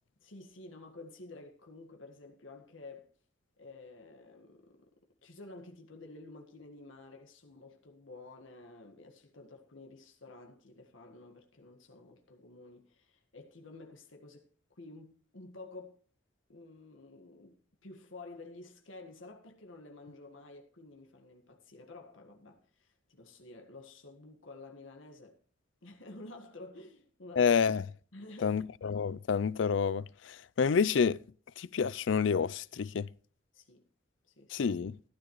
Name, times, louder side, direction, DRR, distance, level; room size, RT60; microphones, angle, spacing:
voice 1, 0.2-3.1 3.6-4.9 5.2-14.5 14.7-16.0 16.5-17.6 17.8-25.4 25.8-27.6 28.1-28.6 33.5-33.8 34.2-34.6, left 2 dB, 90° left, 1.6 m, -51 dB
voice 2, 27.4-27.8 28.4-31.2 31.6-33.1 34.5-35.0, left 6 dB, 70° left, 0.4 m, -29 dB
14.0 x 12.0 x 3.1 m
head